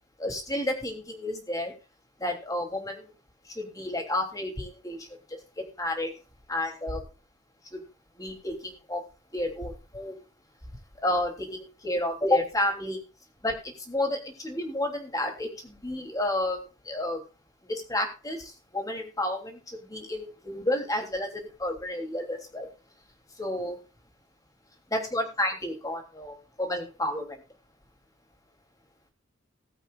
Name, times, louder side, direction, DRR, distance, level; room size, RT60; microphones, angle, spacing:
voice 1, 0.2-1.7 2.2-3.1 3.5-5.4 5.8-6.1 6.5-7.0 7.7-7.8 8.2-9.0 9.3-10.2 11.0-13.0 13.4-17.2 17.7-22.7 23.4-23.8 24.9-27.4, left 1 dB, 20° left, 2 dB, 3.2 m, -31 dB
20.0 x 8.2 x 2.5 m, 0.32 s
head